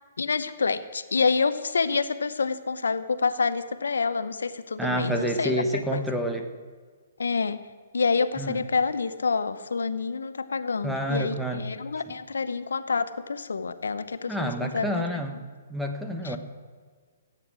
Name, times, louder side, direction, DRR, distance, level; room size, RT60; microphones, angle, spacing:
voice 1, 0.2-6.0 7.2-7.6 7.9-15.2 16.2-16.4, left 4 dB, 90° left, 13 dB, 0.8 m, -27 dB
voice 2, 4.8-6.5 8.4-8.6 10.8-11.6 14.3-15.4 15.7-16.4, right 1 dB, ahead, 4 dB, 1.1 m, -28 dB
16.0 x 9.2 x 6.2 m, 1.5 s
hypercardioid pair, 145°, 0 cm